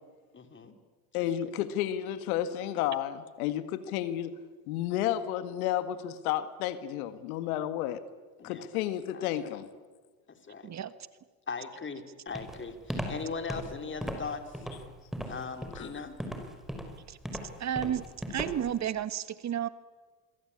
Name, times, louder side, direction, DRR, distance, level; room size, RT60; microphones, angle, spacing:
voice 1, 0.3-0.8 1.1-1.5 8.4-8.7 9.1-9.6 10.3-10.7 11.5-14.6 15.3-16.2, left 5 dB, 25° left, 7 dB, 3.8 m, -39 dB
voice 2, 1.1-4.3 4.7-8.0 8.4-9.7 15.8-15.9, left 11 dB, 75° left, 12 dB, 1.9 m, -32 dB
Walk footsteps, 12.4-18.8, equal, ahead, 5.4 m, -37 dB
voice 3, 17.6-18.0 18.3-19.7, right 9 dB, 40° right, 14 dB, 1.4 m, -32 dB
27.5 x 22.5 x 8.7 m, 1.4 s
hypercardioid pair, 80°, 43 cm